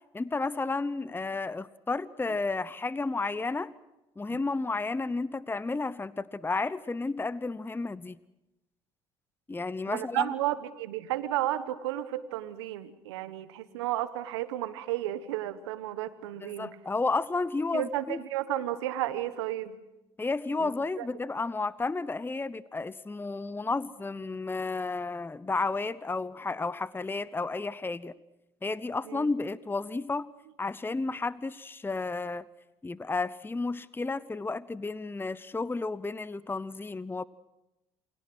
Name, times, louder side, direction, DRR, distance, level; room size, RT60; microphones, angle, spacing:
voice 1, 0.1-3.7 4.2-8.2 9.5-10.3 16.4-18.2 20.2-28.1 28.6-30.3 30.6-32.4 32.8-37.2, left 3 dB, 15° left, 18 dB, 0.8 m, -32 dB
voice 2, 9.9-16.7 17.7-19.8 20.5-20.7 21.0-21.1 29.1-29.3, right 13 dB, 85° right, 12 dB, 1.3 m, -33 dB
28.5 x 22.0 x 6.2 m, 0.95 s
hypercardioid pair, 60°, 14 cm